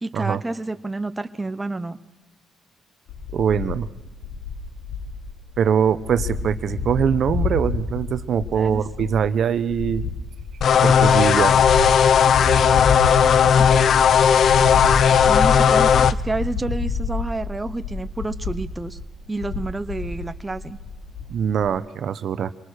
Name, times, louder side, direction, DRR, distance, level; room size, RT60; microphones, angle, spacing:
voice 1, 0.0-2.0 8.6-8.8 15.3-19.0 19.3-20.8, right 2 dB, 15° right, 11 dB, 0.8 m, -29 dB
sound 1, 3.1-21.7, left 4 dB, 80° left, 3.3 m, -28 dB
voice 2, 3.3-3.9 5.6-10.0 10.8-11.6 21.3-22.5, right 8 dB, 60° right, 12 dB, 1.0 m, -22 dB
sound 2, 10.6-16.1, left 7 dB, 60° left, 0.7 m, -16 dB
25.5 x 19.0 x 6.5 m, 1.1 s
cardioid pair, 90°, 0 cm